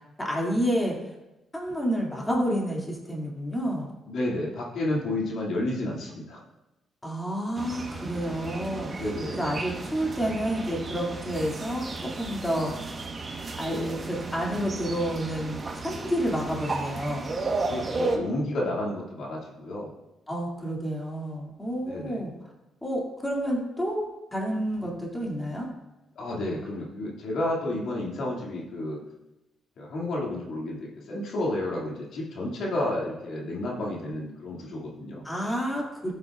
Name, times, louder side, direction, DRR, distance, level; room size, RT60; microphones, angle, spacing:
voice 1, 0.2-1.0 1.5-3.9 7.0-12.7 13.6-17.3 20.3-22.3 22.8-25.7 35.2-36.1, equal, 10° left, -3 dB, 2.3 m, -29 dB
voice 2, 4.1-6.4 8.9-9.4 17.7-19.9 21.9-22.2 26.2-29.0 29.8-35.2, left 1 dB, 65° left, -3 dB, 2.3 m, -31 dB
sound 1, 7.6-18.2, right 3 dB, 35° right, 1.1 m, -34 dB
13.5 x 8.1 x 2.4 m, 0.96 s
cardioid pair, 90°, 0 cm